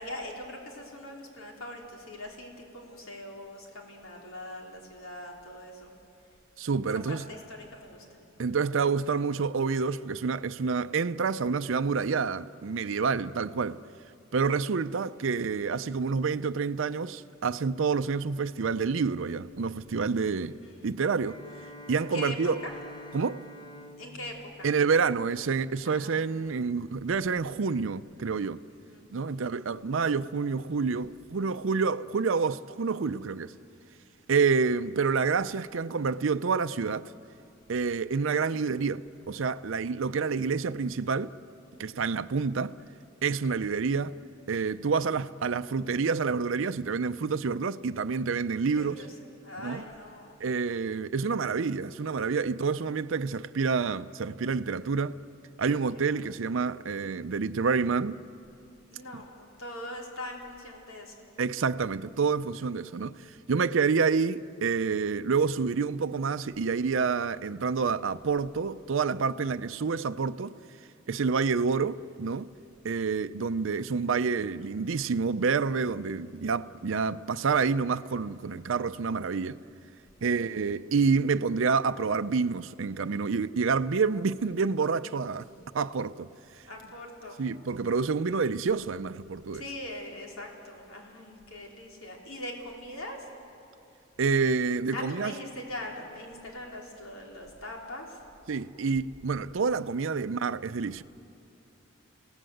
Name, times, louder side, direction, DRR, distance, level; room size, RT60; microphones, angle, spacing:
voice 1, 0.0-5.9 7.1-8.0 20.4-20.9 22.1-22.7 24.0-24.7 25.8-26.3 28.8-29.6 48.6-49.1 49.4-50.4 55.9-56.2 58.9-61.1 80.2-80.6 86.6-87.4 89.5-93.2 94.9-98.2, left 1 dB, 90° left, 3.6 m, -42 dB
voice 2, 6.6-7.2 8.4-13.8 14.3-20.5 20.8-21.4 21.9-22.6 23.1-23.4 24.6-28.6 29.1-33.5 34.3-37.1 37.7-41.3 41.8-42.7 43.2-44.2 44.5-49.0 49.6-49.8 50.4-55.2 55.6-58.2 59.1-59.2 61.4-70.5 71.1-72.5 72.8-79.6 80.2-85.5 85.7-86.3 87.4-89.6 94.2-95.3 98.5-101.0, right 5 dB, 65° right, 0.5 m, -28 dB
Bowed string instrument, 21.2-25.6, equal, 20° left, 0.9 m, -47 dB
30.0 x 17.5 x 7.8 m
head